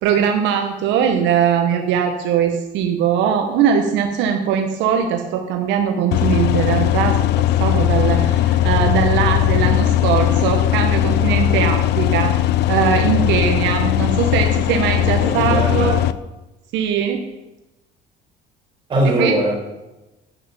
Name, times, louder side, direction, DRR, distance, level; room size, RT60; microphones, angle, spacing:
voice 1, 0.0-7.3 7.6-12.3 12.7-15.9 16.7-17.2 19.2-19.3, right 8 dB, 75° right, 4 dB, 1.3 m, -20 dB
sound 1, 6.1-16.1, left 12 dB, 65° left, 0.6 m, -18 dB
voice 2, 15.2-16.0 18.9-19.5, right 1 dB, 25° right, -3 dB, 5.1 m, -20 dB
10.5 x 9.2 x 7.2 m, 1.0 s
cardioid pair, 150°, 19 cm